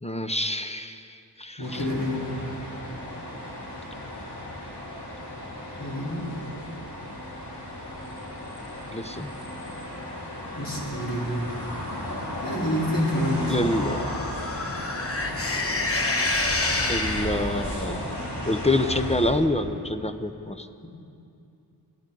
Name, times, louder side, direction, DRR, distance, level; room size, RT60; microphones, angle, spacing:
voice 1, 0.0-1.9 8.9-9.3 13.5-14.1 16.9-18.2 18.4-20.7, left 1 dB, 15° left, 9 dB, 0.7 m, -27 dB
sound 1, 1.6-19.3, left 1 dB, 75° left, 2.9 m, -35 dB
voice 2, 1.6-2.3 5.8-6.3 10.6-11.3 12.4-13.5 20.8-20.9, equal, 55° left, -5 dB, 3.7 m, -27 dB
sound 2, 13.4-17.7, left 2 dB, 35° left, 1.1 m, -28 dB
29.5 x 10.5 x 3.9 m, 2.6 s
wide cardioid pair, 55°, 40 cm